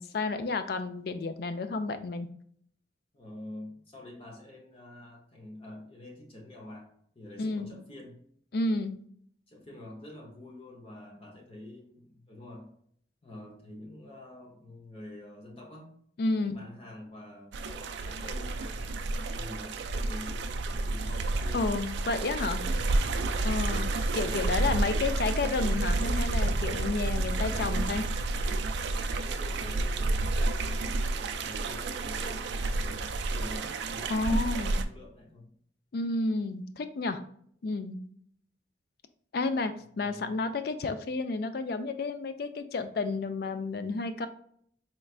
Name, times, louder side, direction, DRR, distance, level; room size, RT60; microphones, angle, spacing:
voice 1, 0.0-2.3 7.4-7.7 8.5-9.0 16.2-16.7 21.5-22.6 23.4-28.1 34.1-34.8 35.9-37.2 37.6-38.1 39.3-44.3, left 3 dB, 50° left, 9 dB, 0.4 m, -31 dB
voice 2, 3.1-8.2 9.5-12.7 13.2-15.9 16.3-21.7 22.8-23.5 24.2-25.1 27.5-28.0 29.1-35.5 40.0-40.3, left 1 dB, 30° left, 0 dB, 0.8 m, -47 dB
sound 1, 17.5-34.8, right 2 dB, 65° right, 0.3 m, -30 dB
4.4 x 3.2 x 2.4 m, 0.63 s
head